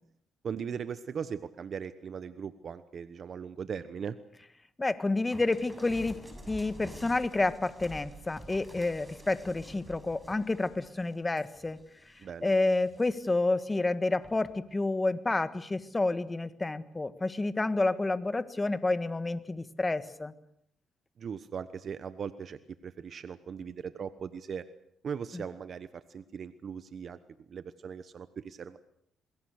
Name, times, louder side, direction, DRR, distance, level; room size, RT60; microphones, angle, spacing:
voice 1, 0.4-4.2 12.2-12.5 21.2-24.6 25.0-27.2 27.5-28.8, right 7 dB, 50° right, 12 dB, 1.1 m, -39 dB
voice 2, 4.8-11.8 12.4-20.3 25.3-25.4, left 2 dB, 20° left, 12 dB, 1.6 m, -29 dB
sound 1, 5.3-12.3 12.7-13.4 14.2-14.6, right 1 dB, 10° right, 7.2 m, -49 dB
28.5 x 21.5 x 6.6 m, 0.74 s
cardioid pair, 90°, 0 cm